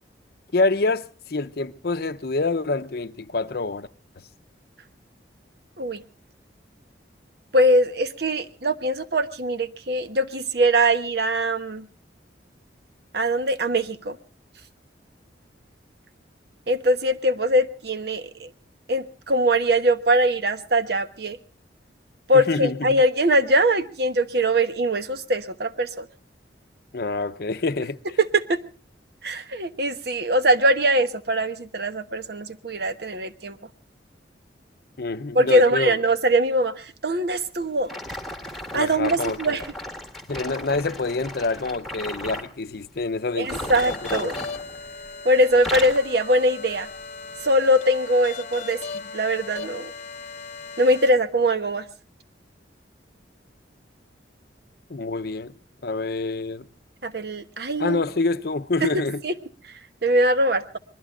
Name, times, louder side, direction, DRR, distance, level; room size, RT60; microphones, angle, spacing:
voice 1, 0.5-3.9 22.3-22.9 26.9-28.2 35.0-36.0 38.7-39.6 40.3-44.3 54.9-55.6 55.8-56.7 57.8-59.2, left 3 dB, 55° left, 0.7 m, -26 dB
voice 2, 7.5-11.9 13.1-14.2 16.7-18.5 18.9-21.4 22.3-26.1 28.2-28.6 29.2-33.6 35.3-37.9 38.7-39.6 43.4-44.3 45.2-46.9 47.4-49.9 50.8-51.8 57.0-58.0 58.8-58.9 59.2-59.3 60.0-60.8, right 1 dB, 60° right, 1.1 m, -22 dB
sound 1, 37.9-42.5 43.4-45.2 45.5-46.1 46.7-46.9 47.6-47.7, left 1 dB, ahead, 1.6 m, -36 dB
sound 2, 43.5-51.1, left 4 dB, 40° left, 1.0 m, -38 dB
25.5 x 21.0 x 2.4 m
head